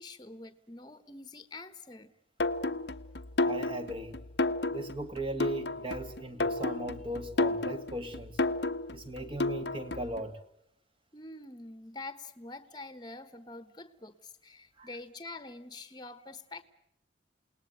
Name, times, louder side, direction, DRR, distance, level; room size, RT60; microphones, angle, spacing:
voice 1, 0.0-2.1 11.1-16.6, left 2 dB, 20° left, 1.4 m, -46 dB
sound 1, 2.4-10.2, left 2 dB, 60° left, 1.0 m, -32 dB
voice 2, 3.4-4.2 4.7-8.4 8.9-10.4 14.8-14.9, right 1 dB, 30° right, 2.2 m, -38 dB
28.5 x 19.5 x 8.1 m
head